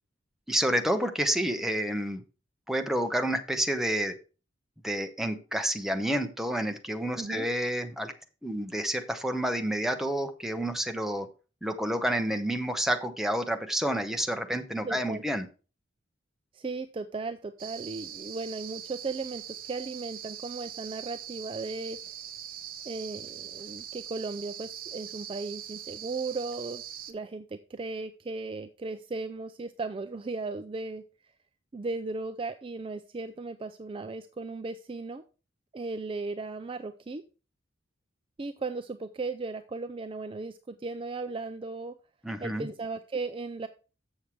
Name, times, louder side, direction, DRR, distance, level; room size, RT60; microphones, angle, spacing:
voice 1, 0.5-2.2 2.7-4.2 4.8-8.1 8.4-11.3 11.6-15.5 42.2-42.7, right 1 dB, ahead, 5 dB, 0.8 m, -29 dB
voice 2, 14.8-15.2 16.5-22.0 22.8-26.8 27.1-31.0 31.7-35.2 35.7-37.2 38.4-41.9 42.4-43.7, right 3 dB, 25° right, 10 dB, 0.3 m, -36 dB
sound 1, 17.6-27.1, right 10 dB, 45° right, 0.8 m, -42 dB
7.2 x 6.5 x 4.5 m, 0.34 s
head